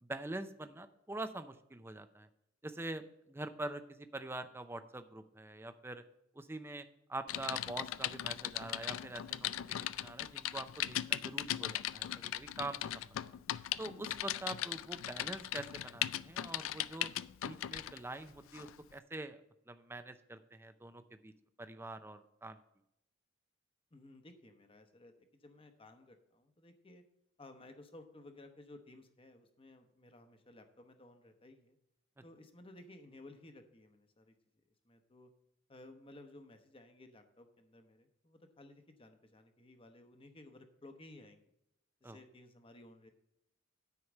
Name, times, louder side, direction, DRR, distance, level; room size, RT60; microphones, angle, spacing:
voice 1, 0.0-2.3 2.6-6.0 6.4-9.5 9.9-13.2 13.8-17.1 17.4-19.4 19.7-21.3 21.6-22.6 42.0-42.2, right 2 dB, 10° right, 9 dB, 0.5 m, -45 dB
Typing, 7.3-18.0 18.5-18.7, left 13 dB, 85° left, 0.3 m, -39 dB
voice 2, 23.9-27.0 27.4-31.8 32.2-34.3 34.8-35.3 35.7-41.5 42.0-43.1, left 2 dB, 25° left, 7 dB, 0.9 m, -57 dB
9.6 x 4.7 x 7.1 m, 0.82 s
head